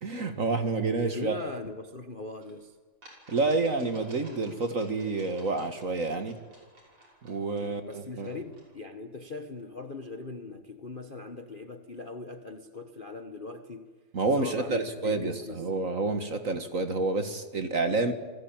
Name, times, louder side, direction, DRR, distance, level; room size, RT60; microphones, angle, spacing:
voice 1, 0.0-1.4 3.3-6.4 7.2-8.4 14.1-18.1, right 3 dB, 40° right, 8 dB, 1.7 m, -29 dB
voice 2, 1.1-2.8 7.6-13.9 14.4-15.7, left 3 dB, 30° left, 7 dB, 1.0 m, -40 dB
sound 1, 2.4-2.5 3.0-8.7, right 1 dB, 80° right, 6.8 m, -55 dB
28.0 x 20.0 x 8.9 m, 1.3 s
omnidirectional pair, 2.4 m